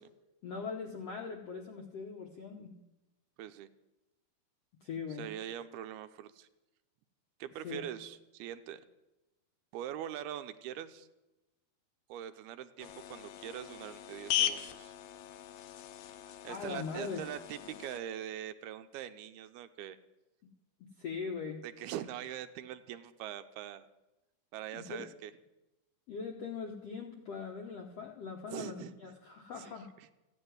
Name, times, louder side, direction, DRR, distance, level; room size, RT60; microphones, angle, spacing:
voice 1, 0.4-2.8 4.8-5.3 7.6-7.9 16.5-17.2 17.6-17.8 21.0-21.6 24.7-25.1 26.1-29.9, left 5 dB, 75° left, 2 dB, 1.5 m, -41 dB
voice 2, 3.4-3.7 5.2-6.5 7.4-8.8 9.7-11.1 12.1-14.9 16.3-20.0 21.6-23.9 24.5-25.3 28.5-29.1 29.6-29.7, right 11 dB, 85° right, 10 dB, 2.7 m, -43 dB
sound 1, 12.8-18.0, left 11 dB, 90° left, 2.9 m, -38 dB
15.0 x 9.8 x 9.5 m, 1.0 s
omnidirectional pair, 4.5 m